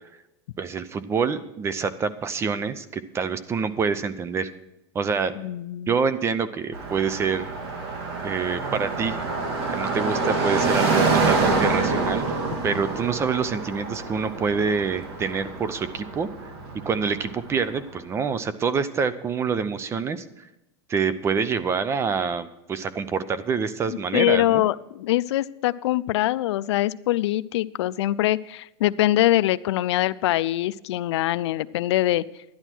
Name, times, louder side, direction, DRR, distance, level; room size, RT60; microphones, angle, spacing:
voice 1, 0.6-4.5 4.9-5.3 5.9-7.5 8.2-9.2 9.7-12.4 12.6-16.3 16.8-20.2 20.9-24.6, right 5 dB, 20° right, 15 dB, 0.6 m, -26 dB
voice 2, 5.4-5.9 23.9-32.2, left 15 dB, 85° left, 17 dB, 0.4 m, -23 dB
Car passing by, 6.7-17.8, right 3 dB, 70° right, 2.1 m, -27 dB
11.0 x 11.0 x 4.5 m, 0.92 s
supercardioid pair, 150°, 14 cm